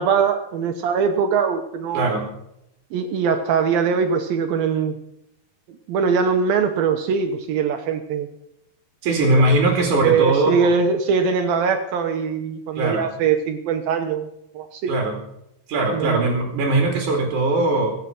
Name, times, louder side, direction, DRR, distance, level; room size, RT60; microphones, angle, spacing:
voice 1, 0.0-2.1 2.9-5.0 5.9-8.3 9.3-9.6 10.0-14.9 15.9-16.2, right 6 dB, 75° right, 6 dB, 2.8 m, -22 dB
voice 2, 1.9-2.3 9.0-10.7 12.8-13.0 14.9-15.2 15.7-18.0, right 2 dB, 55° right, 2 dB, 3.7 m, -20 dB
24.0 x 8.9 x 6.0 m, 0.80 s
omnidirectional pair, 4.4 m